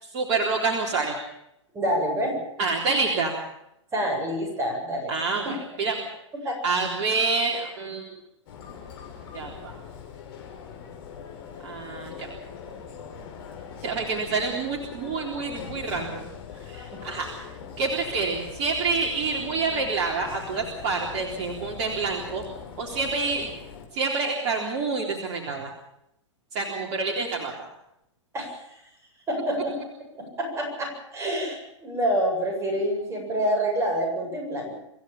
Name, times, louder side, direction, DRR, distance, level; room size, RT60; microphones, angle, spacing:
voice 1, 0.0-1.2 2.6-3.3 5.1-6.1 6.6-8.1 9.3-9.8 11.6-12.3 13.8-16.2 16.7-17.3 17.8-22.4 22.8-23.5 23.9-25.7 26.5-27.5, right 4 dB, 45° right, 0 dB, 3.8 m, -27 dB
voice 2, 1.7-2.4 3.9-5.1 5.4-5.5 6.4-6.6 28.3-28.5 29.3-29.8 30.4-34.8, equal, 15° right, 1 dB, 7.9 m, -27 dB
sound 1, 8.5-23.8, left 7 dB, 50° left, 6.2 m, -41 dB
26.5 x 15.5 x 7.3 m, 0.81 s
figure-of-eight pair, 115°, 16 cm